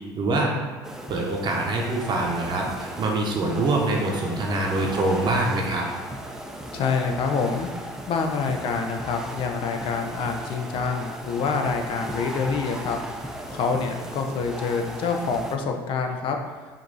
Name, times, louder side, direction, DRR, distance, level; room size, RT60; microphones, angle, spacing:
voice 1, 0.1-0.5 1.1-5.9, right 2 dB, 45° right, -1 dB, 0.8 m, -24 dB
sound 1, 0.8-15.6, right 1 dB, 5° right, 0.6 m, -36 dB
voice 2, 6.7-7.7 8.1-13.0 13.5-16.4, left 5 dB, 55° left, 4 dB, 0.6 m, -26 dB
5.2 x 2.6 x 4.0 m, 1.4 s
hypercardioid pair, 75°, 11 cm